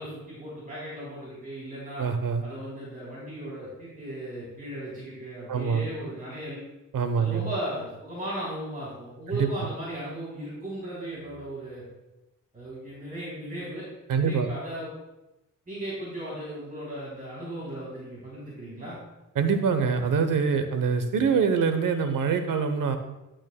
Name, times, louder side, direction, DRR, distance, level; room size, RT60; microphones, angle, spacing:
voice 1, 0.0-2.0 2.4-6.6 7.1-11.8 12.5-13.8 14.1-14.9 15.7-18.9, right 1 dB, 25° right, -8 dB, 3.2 m, -36 dB
voice 2, 2.0-2.4 5.5-5.8 6.9-7.5 9.3-9.5 14.1-14.5 19.4-23.0, right 6 dB, 85° right, 8 dB, 0.9 m, -24 dB
10.5 x 8.9 x 2.2 m, 0.98 s
wide cardioid pair, 120°, 32 cm